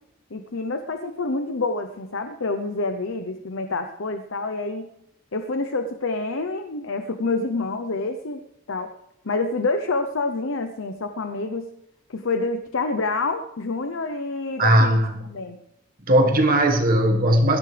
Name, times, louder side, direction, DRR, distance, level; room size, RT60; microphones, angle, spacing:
voice 1, 0.3-4.9 5.3-8.4 8.7-8.9 9.2-11.7 12.1-15.6, left 3 dB, 80° left, 0.8 m, -27 dB
voice 2, 14.6-15.1 16.1-17.6, right 1 dB, 45° right, 1.6 m, -18 dB
21.5 x 15.5 x 3.4 m
head